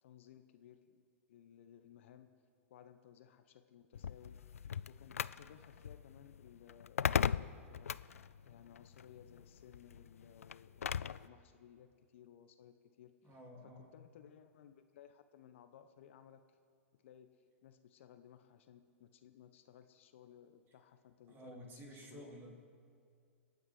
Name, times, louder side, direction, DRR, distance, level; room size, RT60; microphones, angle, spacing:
voice 1, 0.0-1.0 1.3-2.3 2.7-8.0 8.4-13.4 13.6-16.6 17.0-22.4, left 9 dB, 60° left, 9 dB, 1.0 m, -60 dB
sound 1, 3.9-11.3, left 8 dB, 75° left, 0.3 m, -39 dB
voice 2, 13.2-13.9 21.3-22.5, equal, 30° right, 0 dB, 3.7 m, -52 dB
28.5 x 9.5 x 4.9 m, 2.3 s
figure-of-eight pair, 105°, 8 cm